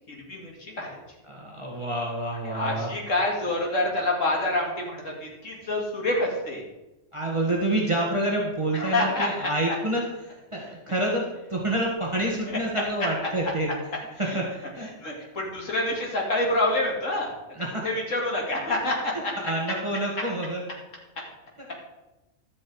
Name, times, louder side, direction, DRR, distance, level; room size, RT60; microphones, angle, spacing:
voice 1, 0.1-1.0 2.2-6.6 8.7-9.7 12.5-12.6 14.2-14.4 14.8-17.3 17.8-19.3, left 1 dB, 75° left, -2 dB, 2.9 m, -27 dB
voice 2, 1.3-2.9 7.1-13.7 14.3-14.4 14.8-14.9 17.6-17.7 19.4-20.6, right 1 dB, 25° right, -2 dB, 1.7 m, -28 dB
12.0 x 8.5 x 4.7 m, 1.0 s
omnidirectional pair, 1.3 m